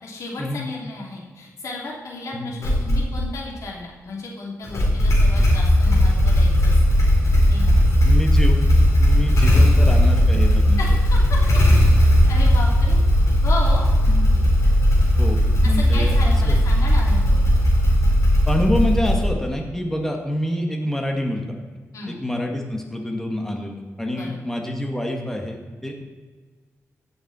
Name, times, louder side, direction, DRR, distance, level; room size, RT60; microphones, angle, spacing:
voice 1, 0.0-6.8 7.5-8.1 10.8-11.6 12.3-13.0 13.4-13.8 15.8-17.4 21.9-22.2 24.1-24.4, left 2 dB, 85° left, -2 dB, 3.2 m, -34 dB
Motorcycle / Engine starting, 2.6-3.3 4.6-19.5, equal, 70° left, 4.1 m, -17 dB
voice 2, 8.0-8.6 9.0-10.8 14.1-14.3 15.2-16.6 18.5-21.5 22.1-26.0, left 1 dB, 5° left, 2 dB, 1.7 m, -27 dB
16.0 x 7.3 x 4.3 m, 1.4 s
wide cardioid pair, 100°, 5 cm